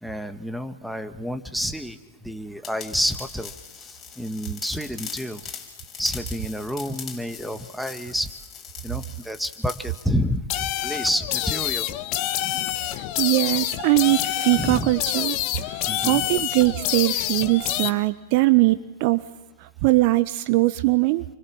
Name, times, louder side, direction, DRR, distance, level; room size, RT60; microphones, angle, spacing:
voice 1, 0.0-5.4 6.0-8.3 8.8-11.9 14.6-14.9 15.9-16.2, equal, ahead, 7 dB, 2.0 m, -29 dB
sound 1, 2.6-10.1, left 7 dB, 25° left, 5.7 m, -41 dB
sound 2, 10.5-17.9, left 13 dB, 45° left, 1.4 m, -27 dB
voice 2, 13.0-15.4 15.7-19.2 19.6-21.2, right 21 dB, 50° right, 12 dB, 1.2 m, -21 dB
29.0 x 25.0 x 7.4 m, 1.0 s
figure-of-eight pair, 95°, 0 cm